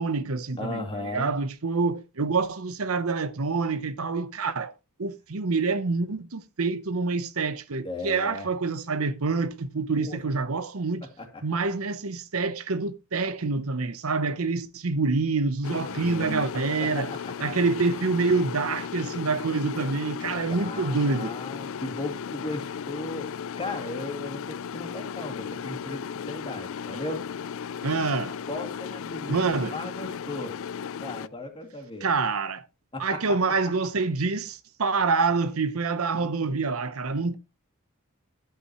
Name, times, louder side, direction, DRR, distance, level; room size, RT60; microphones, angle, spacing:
voice 1, 0.0-4.7 5.0-11.1 11.4-17.1 17.4-21.3 27.8-28.4 29.3-29.7 32.0-32.7 33.0-37.3, right 4 dB, 75° right, 0.8 m, -27 dB
voice 2, 0.6-1.3 7.8-8.5 10.0-10.2 11.0-11.4 15.9-16.4 16.8-17.5 20.5-27.3 28.4-30.5 31.0-32.1 32.9-33.4, left 2 dB, 25° left, 2.4 m, -36 dB
sound 1, 15.6-31.3, left 7 dB, 65° left, 0.4 m, -36 dB
11.5 x 8.2 x 3.0 m
head